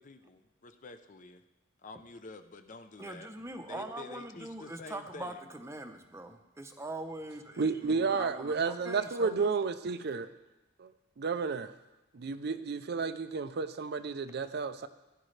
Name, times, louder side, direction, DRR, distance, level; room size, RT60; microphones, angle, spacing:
voice 1, 0.0-1.4 1.8-3.3 3.6-5.4, left 3 dB, 40° left, 8 dB, 0.6 m, -48 dB
voice 2, 3.0-9.5, right 2 dB, 15° right, 6 dB, 0.7 m, -42 dB
voice 3, 7.6-10.3 10.8-10.9 11.2-11.7 12.1-14.9, right 4 dB, 55° right, 11 dB, 0.5 m, -32 dB
15.5 x 10.0 x 3.3 m, 1.0 s
head